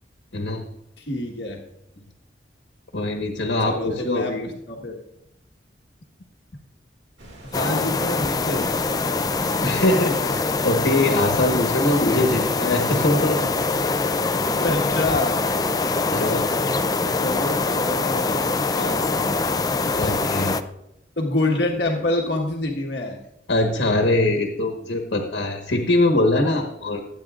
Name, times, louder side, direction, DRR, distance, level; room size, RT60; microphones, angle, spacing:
voice 1, 0.3-0.6 2.9-4.4 9.6-13.4 13.8-13.9 15.8-16.5 19.5-19.6 19.9-20.6 23.5-27.0, left 2 dB, 80° left, 2 dB, 1.4 m, -22 dB
voice 2, 1.0-1.6 3.6-5.0 7.4-8.7 12.0-12.4 14.6-15.4 16.2-16.3 17.2-19.4 21.2-23.2, left 2 dB, 65° left, 0 dB, 1.5 m, -27 dB
sound 1, 7.2-12.5, right 1 dB, 75° right, 2.3 m, -44 dB
sound 2, 7.5-20.6, left 3 dB, 20° left, 0.4 m, -23 dB
22.0 x 9.0 x 2.5 m, 0.83 s
head